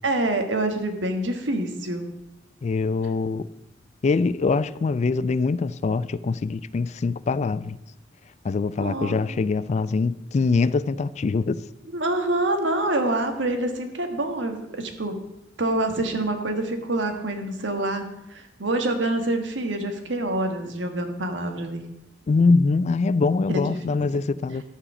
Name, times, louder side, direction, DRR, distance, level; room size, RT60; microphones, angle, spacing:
voice 1, 0.0-2.0 8.8-9.1 11.9-15.2 15.6-21.8 23.6-23.7 24.0-24.1, right 2 dB, 90° right, 1.5 m, -26 dB
voice 2, 2.6-3.5 4.0-7.8 8.4-11.6 22.3-24.6, left 4 dB, 40° left, 0.3 m, -23 dB
13.0 x 4.9 x 6.9 m
head